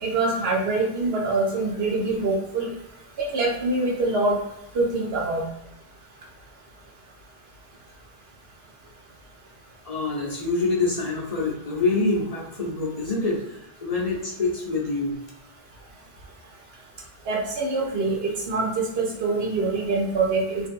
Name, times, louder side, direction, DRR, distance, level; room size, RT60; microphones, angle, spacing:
voice 1, 0.0-2.7 3.3-4.4 4.7-5.4 17.3-20.7, right 3 dB, 80° right, -1 dB, 1.0 m, -24 dB
voice 2, 9.8-15.1, left 3 dB, 45° left, -4 dB, 0.7 m, -26 dB
2.7 x 2.6 x 2.5 m, 0.85 s
omnidirectional pair, 1.0 m